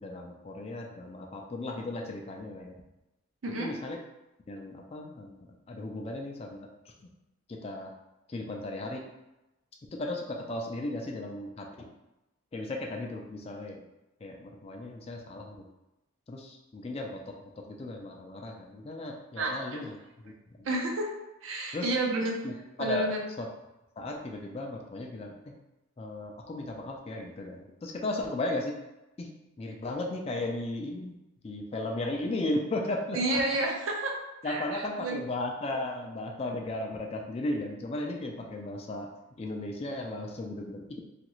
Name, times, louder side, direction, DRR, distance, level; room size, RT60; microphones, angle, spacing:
voice 1, 0.0-2.7 3.6-4.0 4.5-5.4 5.7-6.7 7.0-7.1 7.5-7.9 8.3-9.0 9.9-11.9 12.5-13.8 14.2-15.7 16.3-20.0 20.2-20.3 20.6-20.7 21.7-21.9 22.4-23.1 23.4-23.5 24.0-25.5 26.0-28.8 29.2-29.3 29.6-31.2 31.4-33.4 34.4-39.1 39.4-41.0, left 2 dB, 30° left, 1 dB, 0.3 m, -35 dB
voice 2, 19.4-19.8 20.6-21.1 21.4-22.4 22.8-23.2 33.1-34.1 34.4-35.2, right 2 dB, 75° right, 1 dB, 0.5 m, -30 dB
3.1 x 2.4 x 3.0 m, 0.97 s
head